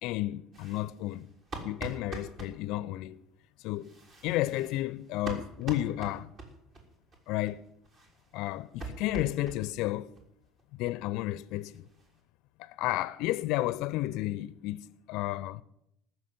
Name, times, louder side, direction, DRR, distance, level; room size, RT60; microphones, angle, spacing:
voice 1, 0.0-1.3 1.6-3.2 3.6-3.9 4.2-6.3 7.3-7.6 8.3-10.1 10.7-11.9 12.6-15.6, left 16 dB, 65° left, 0.4 m, -32 dB
sound 1, 0.5-2.5 3.7-6.8 7.1-7.2 7.5-7.6 7.8-9.9 10.2-10.3 10.6-10.7 11.0-11.1 11.4-12.2, right 3 dB, 50° right, 3.6 m, -44 dB
14.0 x 6.6 x 9.6 m
hypercardioid pair, 65°, 0 cm